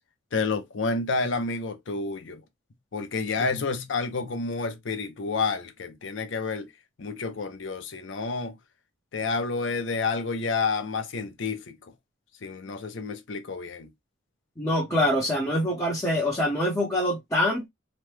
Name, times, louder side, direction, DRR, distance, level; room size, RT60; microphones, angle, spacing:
voice 1, 0.3-2.4 2.9-6.7 7.0-8.6 9.1-11.8 12.4-13.9, left 4 dB, 70° left, 0.6 m, -29 dB
voice 2, 14.6-17.7, left 1 dB, 15° left, 0.7 m, -25 dB
3.0 x 2.1 x 3.1 m
head